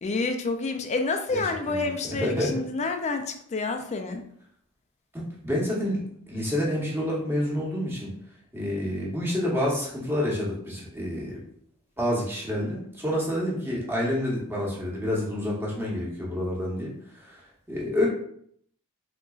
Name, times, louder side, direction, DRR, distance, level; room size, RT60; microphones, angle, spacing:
voice 1, 0.0-4.2, left 3 dB, 30° left, 5 dB, 0.3 m, -28 dB
voice 2, 1.3-1.9 2.2-2.5 5.1-6.0 6.3-8.1 8.5-11.4 12.0-16.9 17.2-17.4 17.7-18.1, left 1 dB, 10° right, -4 dB, 0.9 m, -28 dB
3.7 x 2.9 x 2.3 m, 0.66 s
head